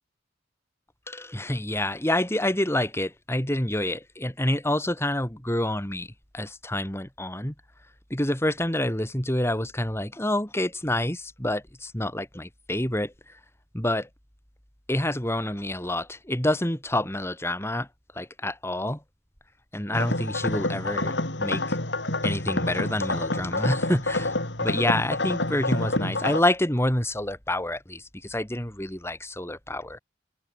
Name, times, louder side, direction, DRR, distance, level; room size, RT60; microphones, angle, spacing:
voice 1, 1.1-7.5 8.1-13.1 13.7-14.1 14.9-17.9 18.1-19.0 19.7-21.8 22.2-30.0, left 1 dB, 15° left, 3.6 m, -28 dB
sound 1, 19.9-26.4, left 2 dB, 70° left, 4.3 m, -28 dB
head